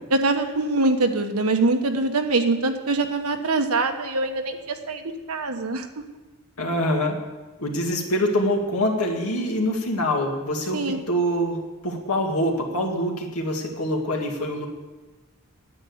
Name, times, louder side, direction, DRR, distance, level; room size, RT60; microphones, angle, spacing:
voice 1, 0.1-5.9 10.7-11.0, right 2 dB, 85° right, 5 dB, 1.2 m, -23 dB
voice 2, 6.6-7.2 7.6-11.6 11.8-14.7, equal, 85° left, 1 dB, 2.0 m, -25 dB
9.6 x 9.0 x 8.0 m, 1.2 s
head